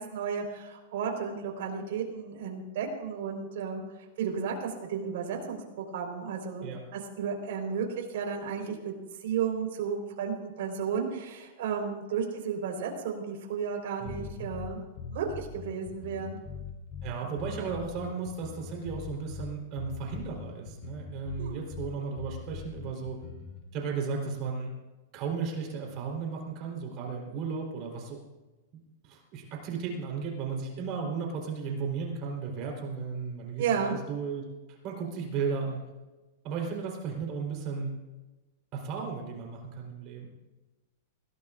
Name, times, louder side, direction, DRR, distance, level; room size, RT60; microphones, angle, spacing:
voice 1, 0.0-3.8 4.2-8.9 9.2-14.8 15.1-16.4 17.2-17.3 21.4-21.6 33.6-33.9, right 6 dB, 65° right, 2 dB, 4.4 m, -33 dB
sound 1, 14.0-23.6, left 6 dB, 40° left, 3.3 m, -42 dB
voice 2, 14.0-14.5 17.0-23.2 23.7-24.7 25.1-28.2 28.7-34.4 34.8-35.8 36.4-37.9 38.7-40.3, right 5 dB, 40° right, 0 dB, 4.0 m, -35 dB
20.5 x 18.0 x 2.6 m, 1.1 s
supercardioid pair, 145°, 0 cm